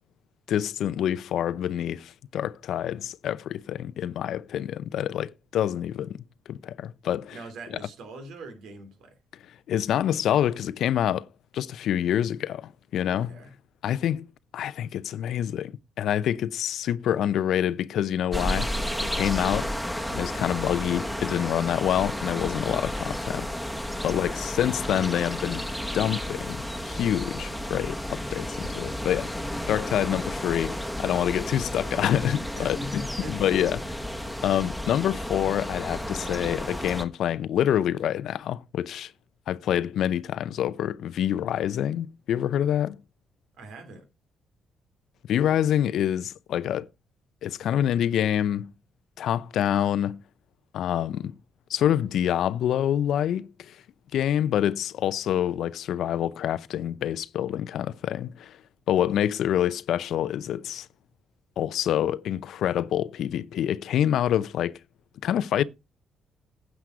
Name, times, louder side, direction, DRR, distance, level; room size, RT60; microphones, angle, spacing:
voice 1, 0.5-7.4 9.7-11.3 11.5-13.3 13.8-14.3 14.5-18.8 19.1-19.7 20.1-23.5 24.0-29.3 29.7-33.0 33.3-33.8 34.4-39.1 39.5-43.0 45.3-46.9 47.4-48.7 49.2-50.2 50.7-51.4 51.7-53.8 54.1-58.6 58.9-60.9 61.6-64.7 65.2-65.6, left 10 dB, 75° left, 0.6 m, -26 dB
voice 2, 7.3-9.2 13.1-13.5 24.1-24.4 32.5-33.5 43.6-44.1, right 2 dB, 80° right, 3.5 m, -42 dB
sound 1, 18.3-37.0, left 1 dB, ahead, 1.4 m, -32 dB
9.5 x 8.1 x 4.8 m
cardioid pair, 90°, 0 cm